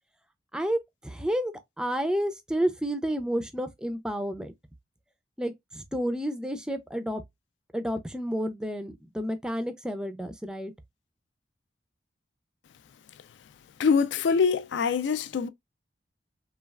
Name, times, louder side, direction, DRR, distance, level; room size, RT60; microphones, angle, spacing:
voice 1, 0.5-4.5 5.4-7.2 7.7-10.7, equal, 5° right, 0.3 m, -30 dB
voice 2, 13.8-15.5, left 5 dB, 75° left, 0.3 m, -24 dB
3.2 x 2.3 x 2.2 m
head